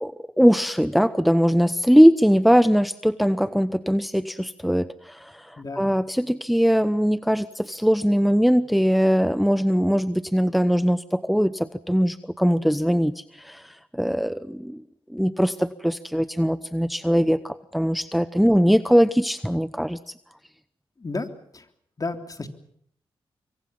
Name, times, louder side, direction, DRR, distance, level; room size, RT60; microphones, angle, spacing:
voice 1, 0.0-14.8 15.1-20.1, equal, ahead, 14 dB, 0.9 m, -21 dB
voice 2, 21.0-21.7 22.0-22.5, left 3 dB, 40° left, 7 dB, 3.3 m, -32 dB
26.0 x 23.5 x 5.7 m, 0.68 s
cardioid pair, 60°, 10 cm